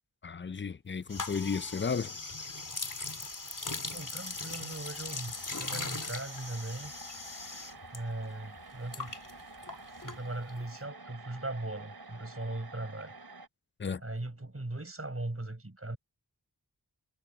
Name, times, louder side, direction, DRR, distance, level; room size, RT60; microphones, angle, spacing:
voice 1, 0.2-2.2 13.8-14.0, left 5 dB, 30° left, 0.4 m, -33 dB
sound 1, 1.1-8.0 8.2-10.6, left 3 dB, 45° left, 2.7 m, -39 dB
sound 2, 2.2-2.3 2.5-13.5, right 3 dB, 60° right, 3.0 m, -51 dB
voice 2, 3.9-6.9 7.9-9.2 10.0-13.1 14.0-16.0, right 2 dB, 35° right, 7.0 m, -39 dB
wide cardioid pair, 50°, 42 cm